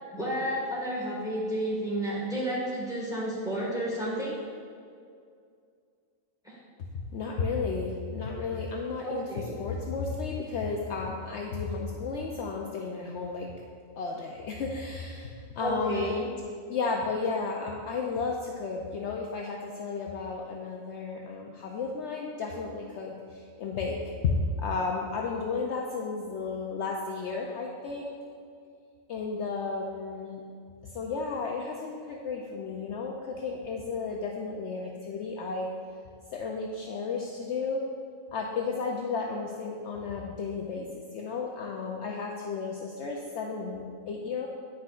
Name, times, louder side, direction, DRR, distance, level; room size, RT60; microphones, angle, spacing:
voice 1, 0.1-4.4 6.4-6.5 9.0-9.5 15.6-16.2, equal, 5° right, -6 dB, 1.6 m, -31 dB
voice 2, 6.9-13.5 14.0-16.2 16.7-24.0 24.2-28.1 29.1-30.4 30.8-35.7 36.3-37.8 38.3-44.5, left 4 dB, 65° left, -1 dB, 0.8 m, -33 dB
9.5 x 5.9 x 2.4 m, 2.3 s
omnidirectional pair, 1.4 m